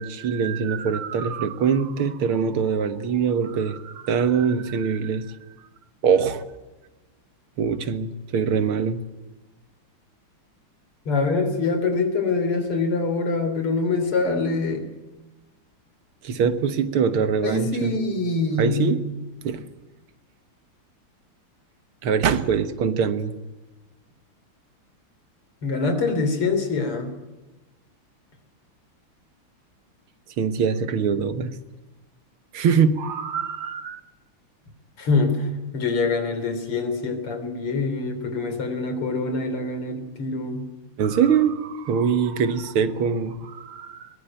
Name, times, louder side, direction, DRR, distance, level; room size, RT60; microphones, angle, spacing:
voice 1, 0.0-5.3 6.0-6.4 7.6-9.0 16.2-17.9 18.6-19.0 19.4-19.6 22.0-23.4 30.4-31.5 32.5-34.0 41.0-44.1, right 6 dB, 75° right, 11 dB, 2.2 m, -23 dB
voice 2, 11.1-14.8 17.4-18.9 25.6-27.1 35.0-35.4 35.7-40.6, left 3 dB, 85° left, 8 dB, 4.2 m, -24 dB
22.0 x 19.0 x 9.1 m, 1.1 s
omnidirectional pair, 2.4 m